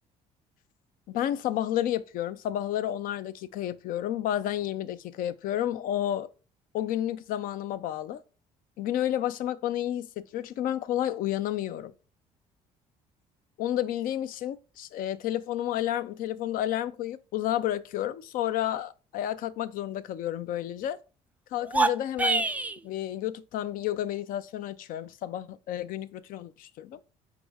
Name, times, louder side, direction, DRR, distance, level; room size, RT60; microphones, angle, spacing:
voice 1, 1.1-6.3 6.7-8.2 8.8-11.9 13.6-21.0 21.5-22.5 22.8-27.0, left 12 dB, 70° left, 0.5 m, -31 dB
sound 1, 21.6-22.8, right 3 dB, 10° right, 0.3 m, -25 dB
4.8 x 3.1 x 3.5 m
supercardioid pair, 80°, 15 cm